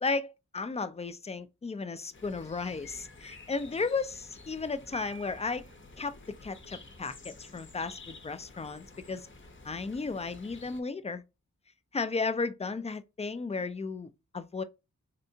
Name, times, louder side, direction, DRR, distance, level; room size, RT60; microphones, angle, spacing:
voice 1, 0.0-5.6 6.0-6.2 6.4-9.3 9.6-11.2 11.9-14.6, left 4 dB, 20° left, 0.3 m, -34 dB
sound 1, 2.1-10.8, left 3 dB, 40° left, 0.7 m, -51 dB
Piano, 4.9-5.9, right 7 dB, 35° right, 0.6 m, -49 dB
3.3 x 2.7 x 2.6 m
wide cardioid pair, 80°, 30 cm